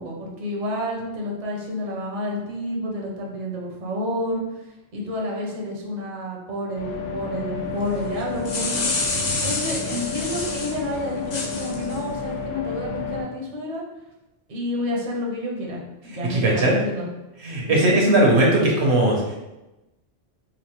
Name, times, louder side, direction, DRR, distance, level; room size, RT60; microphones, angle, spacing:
voice 1, 0.0-4.7 4.9-8.9 9.4-13.8 14.5-17.1 17.7-17.9, left 1 dB, 40° right, -2 dB, 0.7 m, -30 dB
sound 1, 6.7-13.2, left 5 dB, 75° left, 1.1 m, -31 dB
sound 2, 8.2-10.8 11.3-12.0, left 3 dB, 50° left, 0.5 m, -28 dB
voice 2, 9.1-9.5 16.2-16.8 17.4-19.4, right 1 dB, 65° right, -1 dB, 1.0 m, -19 dB
4.0 x 2.5 x 3.0 m, 0.99 s
omnidirectional pair, 1.2 m